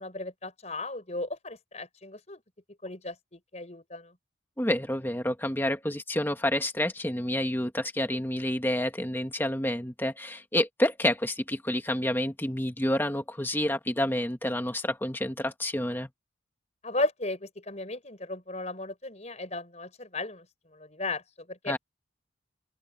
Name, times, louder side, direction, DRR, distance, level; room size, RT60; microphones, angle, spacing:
voice 1, 0.0-2.4 2.8-4.1 16.8-20.5 20.7-21.7, left 2 dB, 35° left, 4.9 m, -35 dB
voice 2, 4.6-16.1 21.7-21.8, left 1 dB, 10° left, 1.7 m, -29 dB
open air
head